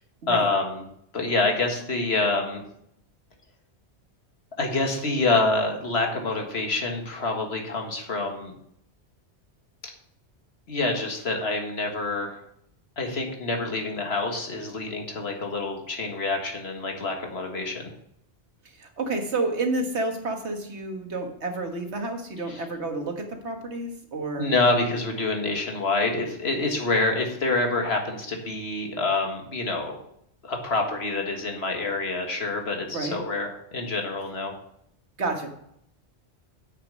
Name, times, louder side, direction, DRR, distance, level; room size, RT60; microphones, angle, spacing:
voice 1, 0.3-0.8 1.1-2.6 4.6-8.5 10.7-12.4 13.0-17.9 22.5-22.6 24.4-30.0 30.4-34.5, left 3 dB, 65° left, 3 dB, 1.9 m, -27 dB
voice 2, 18.8-24.5 32.9-33.2 35.2-35.5, right 2 dB, 80° right, 4 dB, 1.8 m, -30 dB
8.1 x 6.5 x 6.3 m, 0.72 s
omnidirectional pair, 1.1 m